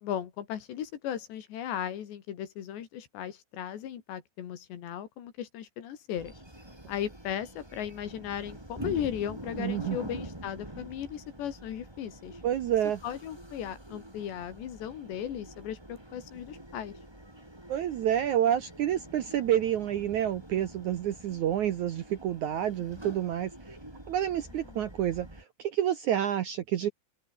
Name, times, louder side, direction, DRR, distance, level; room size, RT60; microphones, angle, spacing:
voice 1, 0.0-6.3 6.9-12.4 13.0-17.0 24.7-24.8, left 10 dB, 75° left, 4.4 m, -36 dB
sound 1, 6.1-25.4, right 1 dB, 5° right, 3.8 m, -46 dB
voice 2, 9.6-10.0 12.4-13.0 17.7-23.8 24.1-25.3 25.6-26.9, right 10 dB, 80° right, 1.7 m, -28 dB
omnidirectional pair, 5.2 m